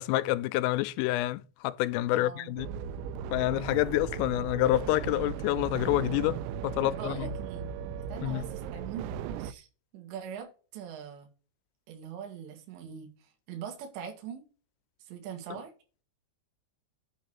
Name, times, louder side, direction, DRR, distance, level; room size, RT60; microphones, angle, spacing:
voice 1, 0.0-2.7 3.3-7.3 8.2-8.4, left 16 dB, 90° left, 3.2 m, -28 dB
voice 2, 2.1-2.6 6.8-7.8 8.1-9.7 9.9-11.3 11.9-14.4 15.0-15.7, right 8 dB, 65° right, 3.9 m, -42 dB
sound 1, 2.6-9.5, right 8 dB, 90° right, 3.3 m, -37 dB
9.3 x 4.1 x 6.9 m
omnidirectional pair, 5.8 m